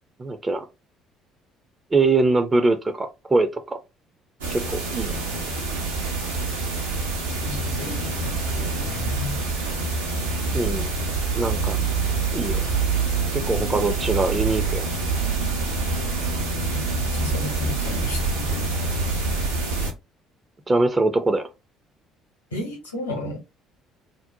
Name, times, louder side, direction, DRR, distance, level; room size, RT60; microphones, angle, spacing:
voice 1, 0.2-0.6 1.9-3.8 4.5-5.2 10.5-10.9 11.3-11.8 12.3-12.6 13.3-14.9 20.7-21.4, right 3 dB, 25° right, 0.4 m, -22 dB
sound 1, 4.4-19.9, right 3 dB, 75° right, 0.6 m, -26 dB
voice 2, 7.3-9.4 16.7-19.5 22.5-23.4, left 1 dB, 80° left, 0.9 m, -34 dB
2.6 x 2.0 x 2.6 m
figure-of-eight pair, 50°, 0 cm